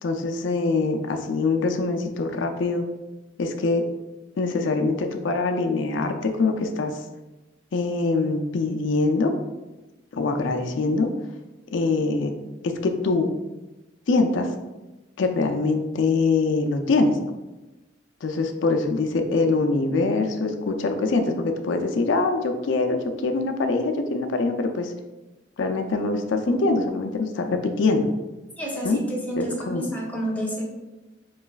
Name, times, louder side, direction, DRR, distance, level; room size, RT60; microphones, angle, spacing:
voice 1, 0.0-2.8 3.4-3.8 4.4-7.0 7.7-9.3 10.1-11.1 11.7-12.3 12.6-13.3 14.1-14.5 15.2-17.2 18.2-24.9 25.6-28.1 28.8-29.0 29.4-29.8, left 3 dB, 80° left, 5 dB, 0.4 m, -23 dB
voice 2, 28.6-30.6, right 1 dB, 10° left, -4 dB, 0.8 m, -29 dB
4.6 x 3.1 x 2.3 m, 1.1 s
head